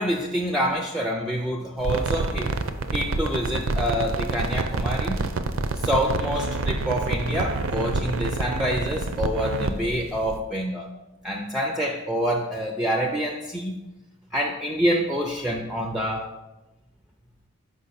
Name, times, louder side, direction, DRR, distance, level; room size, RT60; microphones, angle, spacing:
voice 1, 0.0-2.5 2.9-5.2 5.8-10.9 11.2-13.7 14.3-16.3, equal, ahead, 1 dB, 0.4 m, -26 dB
sound 1, 1.8-10.4, right 3 dB, 65° right, 0.5 m, -27 dB
6.3 x 5.2 x 4.1 m, 1.0 s
head